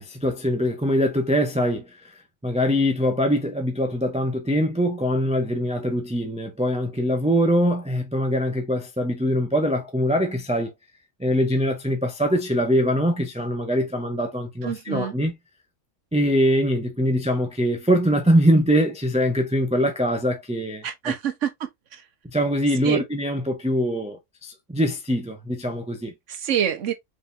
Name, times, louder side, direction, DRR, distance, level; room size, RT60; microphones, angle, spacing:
voice 1, 0.0-10.7 11.2-15.4 16.1-21.1 22.2-26.1, equal, 5° right, 0.6 m, -23 dB
voice 2, 14.6-15.1 20.8-21.7 22.8-23.0 26.3-26.9, right 9 dB, 65° right, 1.3 m, -26 dB
5.1 x 3.5 x 2.7 m
omnidirectional pair, 1.4 m